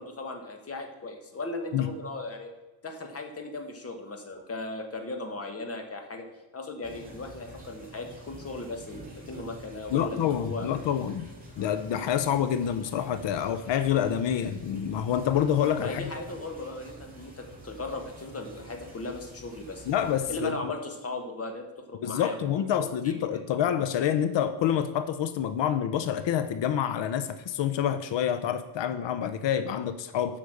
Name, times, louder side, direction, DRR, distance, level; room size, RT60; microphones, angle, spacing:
voice 1, 0.0-2.5 2.8-6.2 6.5-10.7 15.8-19.8 20.3-23.1, left 2 dB, 30° left, 4 dB, 1.6 m, -37 dB
sound 1, 6.8-20.4, right 1 dB, 20° right, 2.9 m, -47 dB
voice 2, 9.9-11.3 11.6-16.1 19.9-20.7 22.0-30.4, left 9 dB, 75° left, 11 dB, 0.7 m, -27 dB
8.5 x 5.7 x 6.6 m, 1.1 s
cardioid pair, 135°, 44 cm